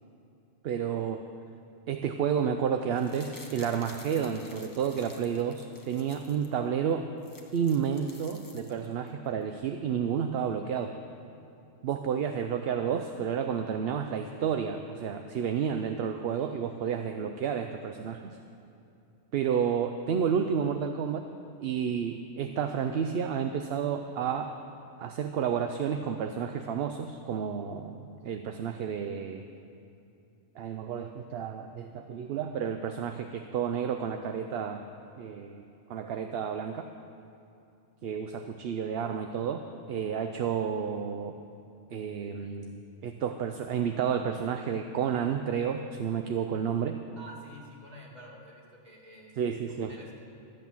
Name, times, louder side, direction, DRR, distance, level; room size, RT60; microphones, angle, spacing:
voice 1, 0.6-1.2 1.9-7.1 7.5-10.9 11.8-18.2 19.3-21.2 21.6-24.5 25.0-29.4 30.6-34.8 35.2-35.6 35.9-36.9 38.0-39.6 39.9-41.3 41.9-47.0 49.4-49.9, right 7 dB, 60° right, 6 dB, 0.7 m, -31 dB
sound 1, 2.8-6.5 6.9-7.0 7.2-9.1 9.4-9.5, left 2 dB, 20° left, 0.8 m, -52 dB
voice 2, 47.2-50.1, right 1 dB, 35° right, -3 dB, 2.2 m, -49 dB
13.0 x 8.2 x 7.1 m, 2.7 s
omnidirectional pair, 1.3 m